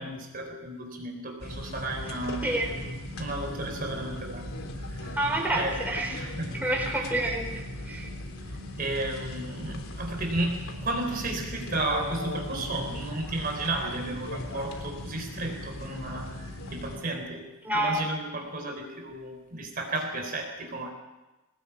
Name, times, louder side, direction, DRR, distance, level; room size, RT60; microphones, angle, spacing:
voice 1, 0.0-2.7 3.1-4.5 4.9-5.2 5.5-6.6 6.9-7.1 8.8-20.9, right 2 dB, 40° right, 3 dB, 4.1 m, -33 dB
sound 1, 1.4-17.0, left 1 dB, 70° left, 3.5 m, -38 dB
voice 2, 2.4-2.7 5.2-6.2 6.6-8.1 17.6-18.0, right 1 dB, 5° right, 0 dB, 4.5 m, -28 dB
23.0 x 18.5 x 8.6 m, 1.1 s
head